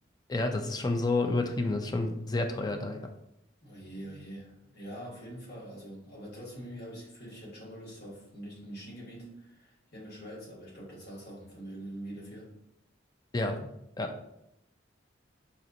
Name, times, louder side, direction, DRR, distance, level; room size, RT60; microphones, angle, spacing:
voice 1, 0.3-3.1 13.3-13.7 14.0-14.1, left 2 dB, 20° left, 5 dB, 0.3 m, -30 dB
voice 2, 3.6-12.5, right 1 dB, 55° left, -5 dB, 1.4 m, -44 dB
4.1 x 2.8 x 2.5 m, 0.80 s
head